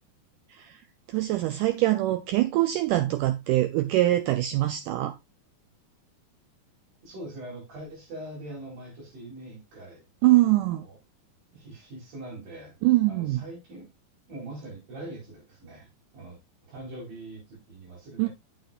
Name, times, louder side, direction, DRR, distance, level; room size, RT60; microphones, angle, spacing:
voice 1, 0.5-5.2 10.2-10.9 12.8-13.4 18.2-18.3, right 16 dB, 90° right, 1.8 m, -24 dB
voice 2, 7.0-10.0 10.3-10.4 10.9-11.0 11.5-12.8 13.1-13.9 14.3-15.9 16.1-16.4 16.7-18.3, right 1 dB, 65° right, 6.3 m, -42 dB
8.3 x 7.8 x 2.5 m
omnidirectional pair, 4.3 m